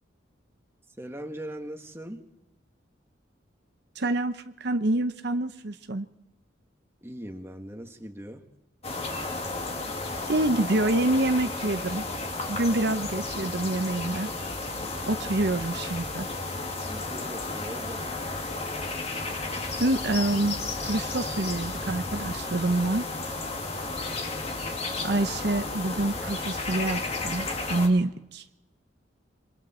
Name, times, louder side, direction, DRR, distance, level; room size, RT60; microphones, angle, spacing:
voice 1, 1.0-2.2 7.0-8.5 16.9-18.1, right 1 dB, 15° right, 4 dB, 1.7 m, -40 dB
voice 2, 4.0-6.1 10.3-12.0 12.5-14.3 15.1-16.3 19.8-23.1 25.0-28.4, right 2 dB, 60° right, 8 dB, 0.8 m, -27 dB
sound 1, 8.8-27.9, left 3 dB, 35° left, 2.4 m, -33 dB
27.5 x 23.5 x 4.4 m, 0.90 s
head